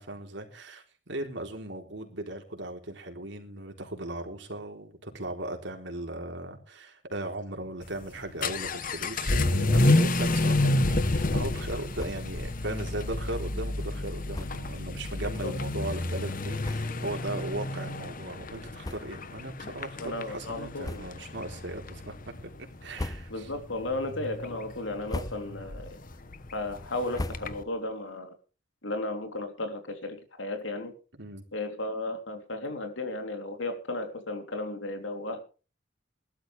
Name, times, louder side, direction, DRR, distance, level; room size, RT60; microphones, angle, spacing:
voice 1, 0.0-22.1 22.8-23.5 31.1-31.4, right 1 dB, 65° right, 3 dB, 3.9 m, -38 dB
Vehicle / Accelerating revving vroom, 7.8-27.6, left 2 dB, 45° left, 1.0 m, -30 dB
sound 1, 11.9-12.4 12.8-12.9 13.1-13.3 14.3-14.7 15.5-15.6 16.3-16.4 16.6-17.1 17.7-17.8 18.8-19.4 19.8-20.0 20.8-21.4 21.8-22.3 22.7-23.6 24.0-24.4 24.9-25.7 26.1-27.9, left 1 dB, 20° left, 0.7 m, -40 dB
voice 2, 15.2-15.6 20.0-21.0 23.3-26.0 26.5-28.3 28.8-30.9 31.5-35.4, left 2 dB, 80° left, 6 dB, 3.3 m, -34 dB
20.5 x 13.0 x 3.4 m, 0.36 s
head